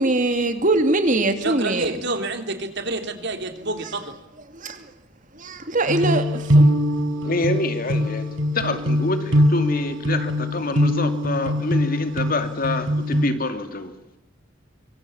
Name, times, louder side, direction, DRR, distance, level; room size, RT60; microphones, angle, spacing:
voice 1, 0.0-2.0 4.5-4.8 5.4-6.7, right 2 dB, 40° right, 8 dB, 2.7 m, -22 dB
voice 2, 1.4-4.1, right 2 dB, 60° right, 7 dB, 3.4 m, -28 dB
sound 1, 5.9-13.2, equal, 75° right, 4.2 m, -22 dB
voice 3, 7.2-8.3 8.5-13.9, left 2 dB, 45° left, 8 dB, 2.7 m, -26 dB
25.0 x 25.0 x 7.2 m, 0.91 s
head